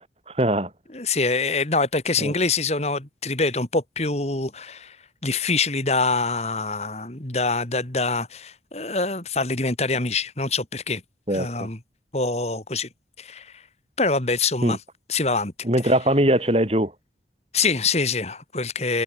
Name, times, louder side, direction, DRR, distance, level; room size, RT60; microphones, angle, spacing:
voice 1, 0.3-0.7 2.2-2.3 11.3-11.5 14.6-14.8 15.6-16.9, right 1 dB, 35° right, 4.4 m, -21 dB
voice 2, 0.9-5.0 5.2-11.0 11.3-11.8 12.1-12.9 13.2-13.5 14.0-14.8 15.1-15.5 17.5-19.0, left 3 dB, 35° left, 2.5 m, -25 dB
head